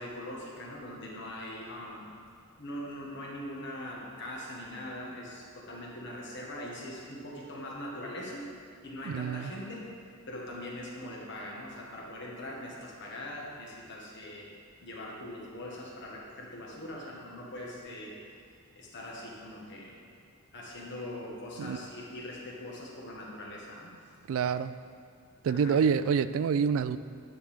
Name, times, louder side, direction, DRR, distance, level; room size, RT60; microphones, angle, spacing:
voice 1, 0.0-2.2 2.6-8.5 8.8-9.9 10.3-14.5 14.8-18.2 18.7-20.0 20.5-23.9 24.4-24.6 25.5-25.8, left 1 dB, 55° left, -3 dB, 1.5 m, -41 dB
voice 2, 9.0-9.5 21.6-21.8 24.3-24.7 25.4-27.0, right 6 dB, 65° right, 15 dB, 0.3 m, -27 dB
10.5 x 6.8 x 3.6 m, 2.2 s
head